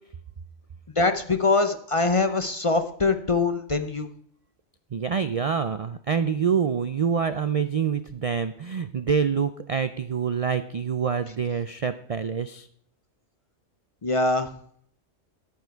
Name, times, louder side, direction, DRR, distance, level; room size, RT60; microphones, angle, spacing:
voice 1, 1.0-4.1 14.0-14.5, left 3 dB, 35° left, 8 dB, 0.6 m, -23 dB
voice 2, 4.9-12.7, right 6 dB, 70° right, 11 dB, 0.3 m, -26 dB
10.5 x 9.4 x 4.6 m, 0.64 s
omnidirectional pair, 1.3 m